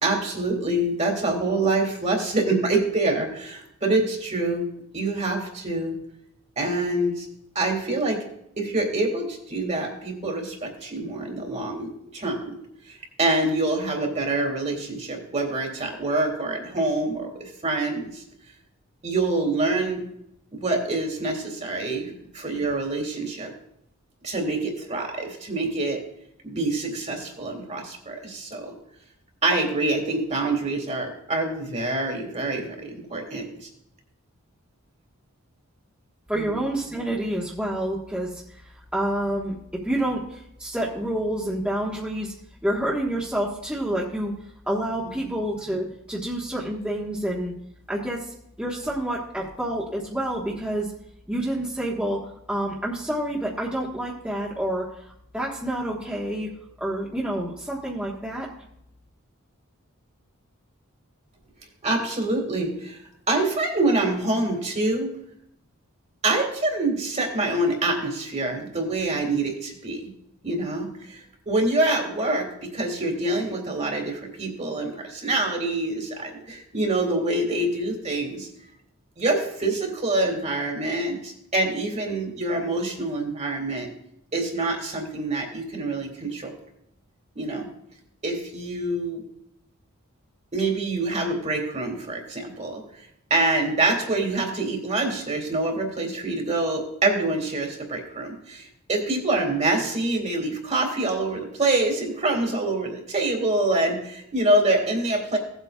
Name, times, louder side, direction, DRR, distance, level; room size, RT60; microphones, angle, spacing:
voice 1, 0.0-4.7 4.9-6.0 6.6-7.3 7.6-8.2 8.6-12.6 12.9-18.2 19.0-20.0 20.5-23.5 24.2-26.0 26.4-28.7 29.4-33.7 36.3-36.5 61.8-63.0 63.3-65.1 66.2-70.1 70.4-78.5 79.2-83.9 84.3-86.5 87.4-87.7 88.2-89.2 90.5-92.8 93.3-105.4, right 2 dB, 30° right, 2 dB, 2.0 m, -26 dB
voice 2, 36.3-38.6 38.9-39.5 39.8-42.3 42.6-44.3 44.7-47.5 47.9-50.9 51.3-52.2 52.5-56.5 56.8-58.5, right 1 dB, 5° right, -5 dB, 1.3 m, -28 dB
16.5 x 8.1 x 2.4 m, 0.76 s
head